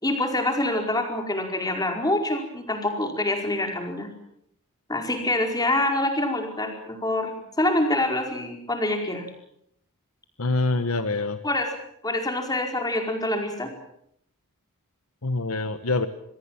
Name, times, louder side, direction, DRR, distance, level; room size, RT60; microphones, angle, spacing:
voice 1, 0.0-4.1 4.9-7.3 7.6-9.3 11.4-11.7 12.0-13.7, left 1 dB, 15° left, 4 dB, 4.9 m, -26 dB
voice 2, 10.4-11.4 15.2-16.1, left 3 dB, 70° left, 10 dB, 1.4 m, -25 dB
26.5 x 20.5 x 7.4 m, 0.73 s
head